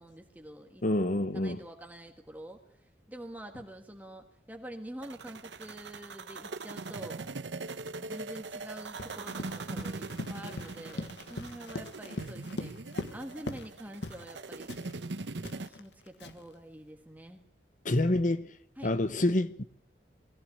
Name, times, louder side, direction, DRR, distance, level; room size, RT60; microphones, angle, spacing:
voice 1, 0.0-0.8 1.3-2.6 3.1-7.2 8.0-12.8 13.1-14.7 15.6-17.4 18.8-18.9, right 1 dB, 10° right, 1.5 m, -46 dB
voice 2, 0.8-1.6 17.8-18.5 18.8-19.6, left 1 dB, 45° left, 0.9 m, -27 dB
sound 1, 5.0-15.7, right 3 dB, 85° right, 1.0 m, -41 dB
Run, 9.0-13.7 14.0-14.3 14.7-16.5, left 1 dB, 80° left, 1.6 m, -41 dB
20.5 x 14.5 x 8.5 m
head